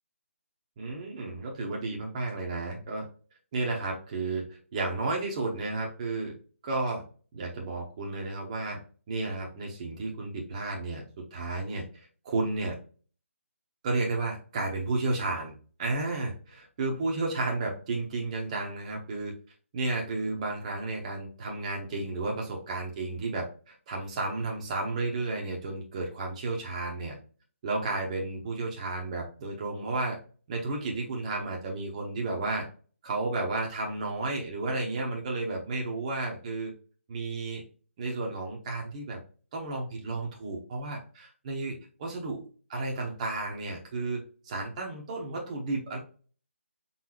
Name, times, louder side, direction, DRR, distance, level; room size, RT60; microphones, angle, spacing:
voice 1, 0.8-3.1 3.5-6.3 6.6-7.0 7.3-8.8 9.1-12.8 13.8-19.3 19.7-27.2 27.6-30.2 30.5-32.7 33.0-36.7 37.1-37.6 38.0-39.2 39.5-42.4 42.7-46.0, right 2 dB, 30° right, -1 dB, 0.9 m, -32 dB
4.0 x 3.6 x 3.0 m, 0.40 s
figure-of-eight pair, 155°, 7 cm